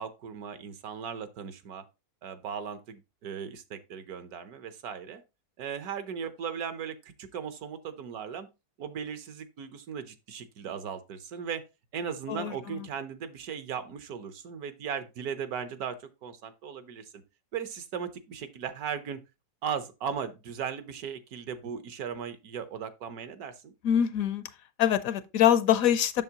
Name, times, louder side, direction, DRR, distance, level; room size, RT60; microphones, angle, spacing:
voice 1, 0.0-1.8 2.2-5.2 5.6-8.5 8.8-11.6 11.9-17.1 17.5-19.2 19.6-23.7, right 7 dB, 75° right, 1.3 m, -37 dB
voice 2, 12.3-12.9 23.8-24.4 24.8-26.2, left 10 dB, 70° left, 1.0 m, -24 dB
7.2 x 6.5 x 2.8 m
omnidirectional pair, 1.6 m